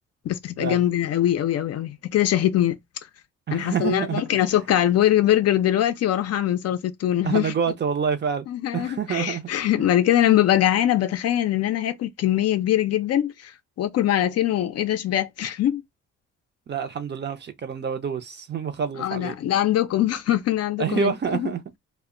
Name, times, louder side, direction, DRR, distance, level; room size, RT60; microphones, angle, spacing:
voice 1, 0.3-2.8 3.5-7.5 8.5-13.5 13.8-15.8 19.0-21.5, left 12 dB, 55° left, 0.4 m, -22 dB
voice 2, 3.5-4.2 7.2-8.5 8.7-9.5 16.7-19.4 20.8-21.6, right 7 dB, 35° right, 0.5 m, -27 dB
2.1 x 2.1 x 3.6 m
cardioid pair, 90°, 30 cm